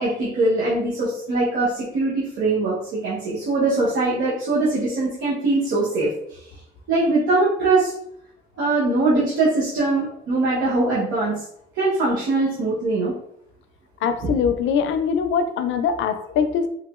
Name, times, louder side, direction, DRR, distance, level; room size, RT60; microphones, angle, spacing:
voice 1, 0.0-6.1 6.9-7.9 8.6-11.3 11.7-13.1, right 2 dB, 85° right, -8 dB, 0.9 m, -22 dB
voice 2, 14.0-16.7, left 6 dB, 75° left, 8 dB, 0.4 m, -22 dB
3.2 x 2.8 x 2.4 m, 0.73 s
cardioid pair, 90°, 20 cm